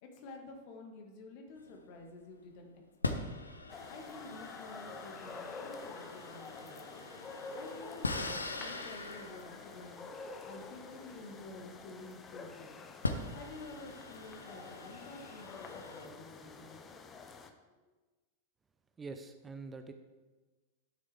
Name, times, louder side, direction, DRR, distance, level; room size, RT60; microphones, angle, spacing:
voice 1, 0.0-2.7 3.1-3.2 3.9-7.1 7.5-10.0 10.4-12.8 13.3-17.3, left 2 dB, 45° left, 3 dB, 1.7 m, -50 dB
sound 1, 1.6-2.3 3.0-12.2 12.6-12.7 13.0-16.1, left 2 dB, 80° left, 0.7 m, -42 dB
sound 2, 3.7-17.5, left 4 dB, 25° left, 0.8 m, -48 dB
voice 2, 19.0-19.9, right 4 dB, 15° right, 8 dB, 0.5 m, -45 dB
11.5 x 6.4 x 3.4 m, 1.3 s
figure-of-eight pair, 90°, 0 cm